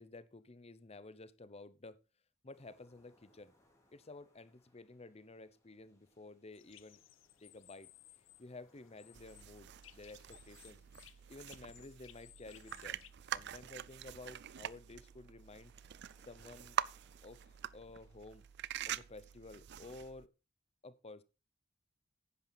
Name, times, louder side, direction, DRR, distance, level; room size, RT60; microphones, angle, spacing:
voice 1, 0.0-2.0 2.4-3.5 3.9-7.0 7.4-7.9 8.4-10.8 11.3-15.7 16.3-16.8 17.2-18.4 18.9-20.3 20.8-21.2, left 2 dB, 30° left, 0.8 m, -53 dB
sound 1, 2.5-19.6, left 1 dB, 15° left, 3.4 m, -74 dB
sound 2, 6.5-13.1, left 14 dB, 70° left, 0.7 m, -62 dB
sound 3, 9.1-20.3, right 10 dB, 55° right, 0.4 m, -45 dB
10.5 x 9.0 x 4.1 m
head